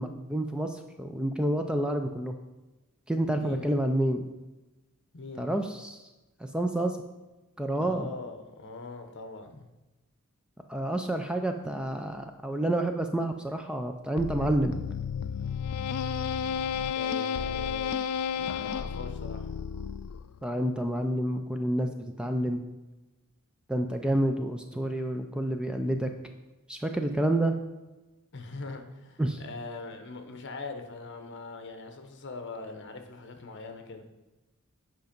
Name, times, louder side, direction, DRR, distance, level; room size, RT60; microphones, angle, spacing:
voice 1, 0.0-2.4 3.1-4.2 5.4-6.0 6.4-7.0 7.6-8.1 10.7-14.8 20.4-22.6 23.7-26.1 26.7-27.6 29.2-29.4, right 1 dB, 5° right, 5 dB, 0.4 m, -29 dB
voice 2, 3.4-3.7 5.1-5.5 7.8-9.7 16.9-18.0 18.3-19.5 28.3-34.0, left 3 dB, 55° left, 5 dB, 1.0 m, -41 dB
sound 1, 14.2-20.4, left 7 dB, 90° left, 0.3 m, -32 dB
8.1 x 5.1 x 5.2 m, 1.1 s
head